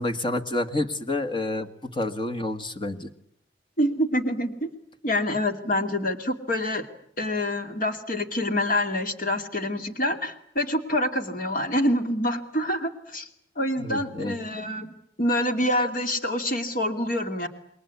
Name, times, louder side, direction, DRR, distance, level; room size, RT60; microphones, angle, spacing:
voice 1, 0.0-3.1 13.8-14.3, left 2 dB, 25° left, 8 dB, 1.7 m, -29 dB
voice 2, 3.8-4.7 5.0-6.9 7.2-13.3 13.6-17.5, left 1 dB, 50° left, 6 dB, 2.5 m, -26 dB
28.0 x 22.5 x 8.4 m, 0.72 s
head